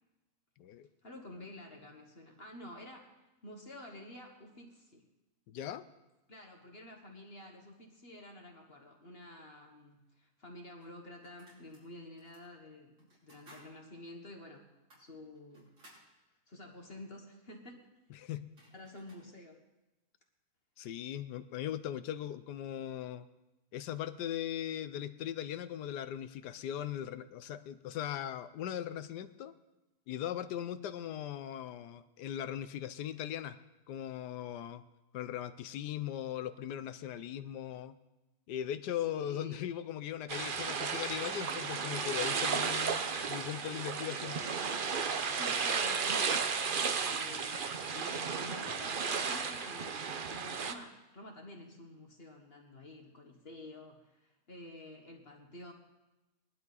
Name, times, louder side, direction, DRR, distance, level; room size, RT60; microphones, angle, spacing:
voice 1, 1.0-5.1 6.3-14.7 14.9-15.7 16.5-17.9 18.7-19.6 39.1-39.7 42.4-42.7 45.2-55.7, left 1 dB, 40° left, 2 dB, 1.5 m, -50 dB
voice 2, 5.5-5.8 18.2-18.4 20.8-23.3 23.7-29.5 30.1-33.6 33.9-34.8 35.1-37.9 38.5-44.4, left 10 dB, 85° left, 13 dB, 1.3 m, -39 dB
sound 1, 10.0-10.1 10.8-11.8 12.2-12.4 13.0-13.7 14.1-14.2 14.7-16.1 18.1-18.2 18.4-19.3, right 1 dB, 80° right, 4.5 m, -60 dB
sound 2, 40.3-50.7, right 5 dB, 50° right, 0.7 m, -34 dB
19.5 x 11.5 x 4.1 m, 1.0 s
omnidirectional pair, 1.7 m